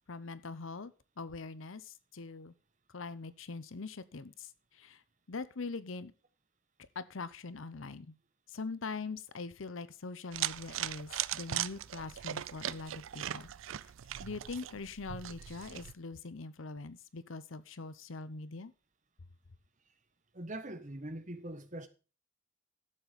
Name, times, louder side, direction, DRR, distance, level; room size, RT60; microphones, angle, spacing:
voice 1, 0.1-2.5 2.9-5.0 5.3-6.1 6.9-8.2 8.5-13.5 13.8-13.9 14.2-18.7, left 4 dB, 70° left, 0.8 m, -43 dB
sound 1, 10.3-15.9, right 11 dB, 75° right, 0.4 m, -39 dB
voice 2, 20.3-21.9, right 1 dB, 35° right, 1.3 m, -42 dB
12.0 x 7.3 x 5.2 m
head